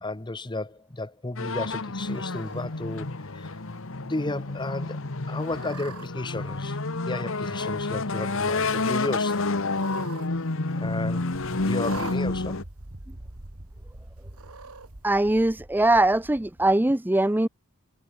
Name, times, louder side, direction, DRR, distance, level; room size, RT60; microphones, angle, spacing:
voice 1, 0.0-3.6 4.0-5.0 5.3-6.8 7.1-9.4 10.8-12.6, left 2 dB, 20° left, 0.9 m, -33 dB
sound 1, 1.4-12.6, left 3 dB, 60° left, 1.4 m, -29 dB
Cat, 2.0-2.6 3.3-3.8 4.2-4.3 5.4-6.1 7.1-7.7 8.0-8.6 9.6-10.3 10.6-10.7 11.8-12.2 13.1-13.2 14.3-14.9, right 5 dB, 75° right, 1.4 m, -43 dB
sound 2, 11.3-16.8, right 1 dB, 45° right, 1.9 m, -45 dB
voice 2, 15.0-17.5, right 1 dB, 10° right, 0.5 m, -21 dB
head